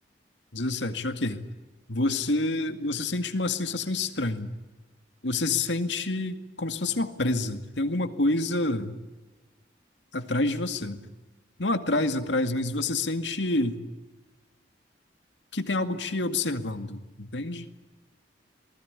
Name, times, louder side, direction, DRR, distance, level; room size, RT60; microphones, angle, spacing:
voice 1, 0.5-1.4 1.9-4.5 5.2-9.0 10.1-11.0 11.6-13.8 15.5-17.7, left 2 dB, 80° left, 8 dB, 2.2 m, -28 dB
27.0 x 20.0 x 9.8 m, 1.1 s
head